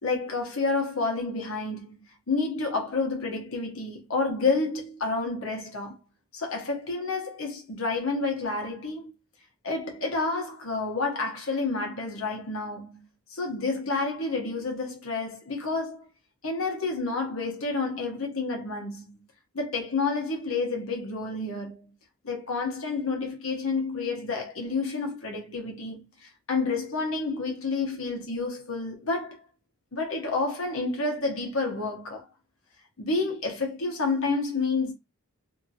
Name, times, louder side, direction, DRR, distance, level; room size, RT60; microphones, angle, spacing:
voice 1, 0.0-6.0 6.3-9.1 9.6-13.0 13.3-16.1 16.4-19.2 19.5-21.9 22.2-29.4 29.9-32.2 33.0-34.9, left 3 dB, 70° left, 1.1 m, -29 dB
2.9 x 2.6 x 2.7 m
head